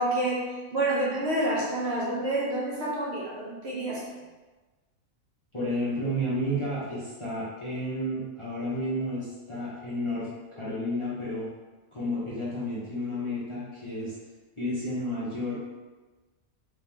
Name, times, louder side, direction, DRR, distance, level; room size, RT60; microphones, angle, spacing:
voice 1, 0.0-4.0, right 1 dB, 55° right, -5 dB, 0.9 m, -28 dB
voice 2, 5.5-11.5 11.9-14.1 14.6-15.5, equal, 25° left, -10 dB, 0.8 m, -31 dB
3.5 x 2.9 x 3.4 m, 1.2 s
omnidirectional pair, 1.5 m